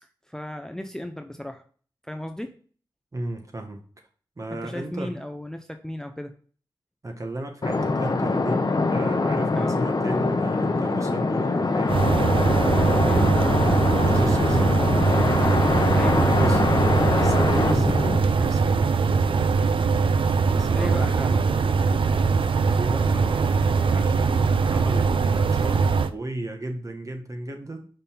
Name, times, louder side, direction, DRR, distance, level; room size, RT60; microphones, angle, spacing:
voice 1, 0.3-1.6 2.1-2.6 4.6-6.3 9.5-9.7 13.1-13.3 15.9-16.2 20.7-21.1, left 1 dB, 5° left, 6 dB, 0.6 m, -34 dB
voice 2, 3.1-3.8 4.4-5.2 7.0-12.0 12.5-13.5 14.0-14.9 16.2-19.8 20.5-21.5 22.7-27.9, right 1 dB, 35° right, 4 dB, 1.2 m, -35 dB
sound 1, 7.6-18.2, left 3 dB, 45° left, 0.8 m, -23 dB
sound 2, 11.9-26.1, right 5 dB, 70° right, 0.5 m, -22 dB
5.5 x 5.3 x 4.4 m, 0.43 s
wide cardioid pair, 95°, 9 cm